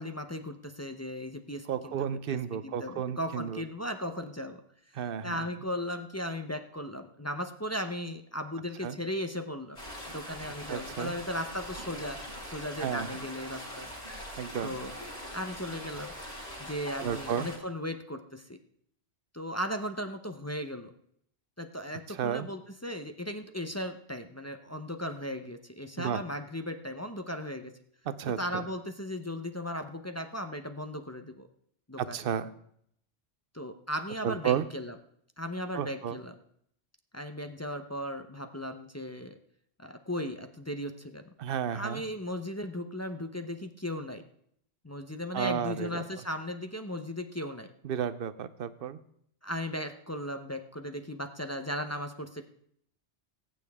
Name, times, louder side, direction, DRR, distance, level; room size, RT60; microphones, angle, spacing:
voice 1, 0.0-2.4 2.6-4.6 5.2-9.8 10.1-12.2 12.5-13.9 14.6-14.9 15.3-16.1 16.6-18.6 19.3-20.9 21.6-27.7 28.4-31.5 31.9-32.2 33.5-34.9 35.4-36.3 37.1-39.4 39.8-41.2 41.7-44.2 44.8-47.7 49.4-52.4, equal, 15° left, 6 dB, 0.7 m, -36 dB
voice 2, 1.7-3.6 4.9-5.5 8.8-9.0 10.7-11.1 12.8-13.2 14.4-14.8 17.0-17.5 22.1-22.5 26.0-26.2 28.1-28.6 32.0-32.5 34.2-34.7 35.7-36.2 41.4-42.0 45.3-46.0 47.8-49.0, right 8 dB, 60° right, 14 dB, 0.9 m, -32 dB
sound 1, 9.8-17.6, equal, 40° left, 4.5 m, -42 dB
19.0 x 9.0 x 3.5 m, 0.69 s
omnidirectional pair, 1.1 m